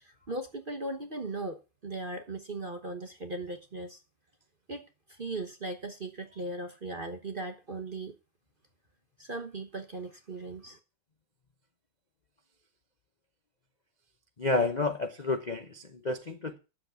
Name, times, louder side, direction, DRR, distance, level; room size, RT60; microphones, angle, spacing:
voice 1, 0.0-4.0 4.7-8.1 9.2-10.8, right 2 dB, 35° right, 6 dB, 0.9 m, -38 dB
voice 2, 14.4-16.6, left 3 dB, 45° left, 7 dB, 0.5 m, -30 dB
10.5 x 7.5 x 7.0 m, 0.30 s
omnidirectional pair, 2.4 m